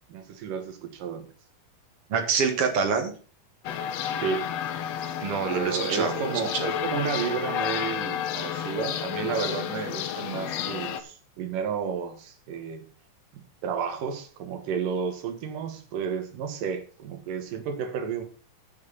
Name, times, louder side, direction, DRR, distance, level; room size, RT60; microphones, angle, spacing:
voice 1, 0.1-1.3 4.2-4.5 5.5-12.9 13.3-18.2, right 6 dB, 80° right, 6 dB, 3.0 m, -32 dB
voice 2, 2.1-3.1 5.2-6.7, right 5 dB, 50° right, 6 dB, 2.5 m, -26 dB
sound 1, 3.6-11.0, left 9 dB, 70° left, 1.7 m, -31 dB
10.5 x 6.8 x 5.5 m, 0.39 s
omnidirectional pair, 3.8 m